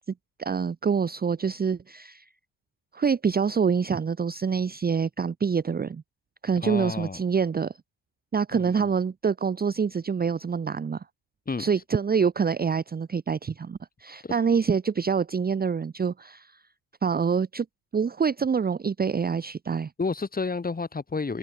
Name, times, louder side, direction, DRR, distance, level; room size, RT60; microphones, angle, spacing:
voice 1, 0.4-2.3 2.9-6.0 6.4-7.7 8.3-11.0 11.6-16.6 17.0-17.7 17.9-19.9, right 6 dB, 20° right, 1.0 m, -26 dB
voice 2, 6.6-7.2 8.5-8.9 11.5-11.7 14.2-14.4 20.0-21.4, left 4 dB, 20° left, 4.6 m, -31 dB
cardioid pair, 130°, 46 cm